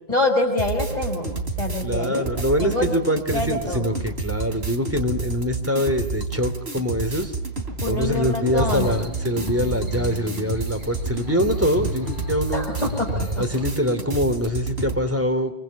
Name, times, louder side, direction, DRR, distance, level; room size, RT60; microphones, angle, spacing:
voice 1, 0.1-1.3 1.6-2.9 3.3-3.8 7.8-9.1 12.5-13.3, left 2 dB, 45° left, -2 dB, 5.3 m, -26 dB
sound 1, 0.6-15.0, right 4 dB, 85° right, 3.4 m, -30 dB
voice 2, 1.8-7.3 7.9-12.7 13.4-15.5, left 1 dB, 15° right, 7 dB, 3.5 m, -24 dB
sound 2, 8.5-13.7, left 2 dB, 50° right, 7.6 m, -34 dB
28.0 x 24.5 x 7.5 m, 0.87 s
omnidirectional pair, 1.0 m